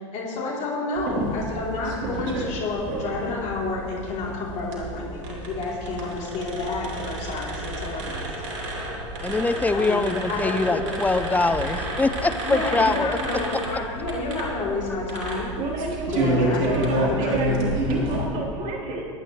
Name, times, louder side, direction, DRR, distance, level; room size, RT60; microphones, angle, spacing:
voice 1, 0.0-8.2 9.7-10.9 12.4-15.5 16.1-17.6, left 3 dB, 45° left, -4 dB, 3.7 m, -30 dB
sound 1, 0.9-18.2, right 1 dB, 65° right, 3.7 m, -30 dB
voice 2, 9.2-13.2, left 3 dB, 10° left, 11 dB, 0.7 m, -23 dB
voice 3, 15.3-19.0, right 2 dB, 45° right, -3 dB, 4.0 m, -30 dB
23.0 x 9.9 x 3.3 m, 2.4 s
hypercardioid pair, 90°, 17 cm